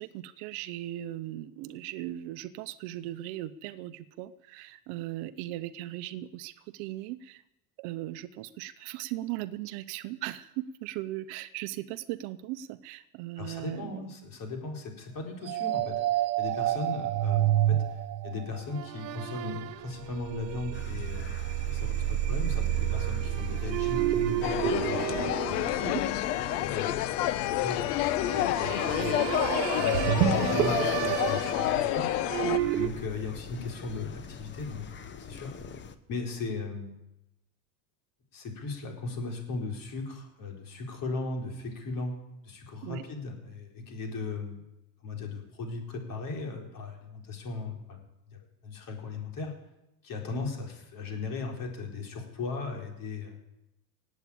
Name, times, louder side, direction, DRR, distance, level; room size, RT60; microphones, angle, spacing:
voice 1, 0.0-7.4 7.8-14.1 25.8-26.0 42.8-43.0, right 15 dB, 55° right, 13 dB, 0.8 m, -38 dB
voice 2, 13.4-21.4 21.6-26.0 26.6-27.0 27.3-29.3 29.7-32.1 32.5-35.5 36.1-36.9 38.3-42.1 42.4-44.6 45.0-48.0 48.3-49.5 50.0-53.4, left 3 dB, 40° left, 2 dB, 4.3 m, -37 dB
sound 1, 15.5-26.6 28.1-32.9, right 13 dB, 85° right, 1.2 m, -30 dB
sound 2, 20.7-36.0, left 6 dB, 25° left, 1.0 m, -44 dB
sound 3, 24.4-32.6, left 14 dB, 70° left, 1.0 m, -29 dB
18.0 x 8.5 x 8.5 m, 0.89 s
supercardioid pair, 120°, 49 cm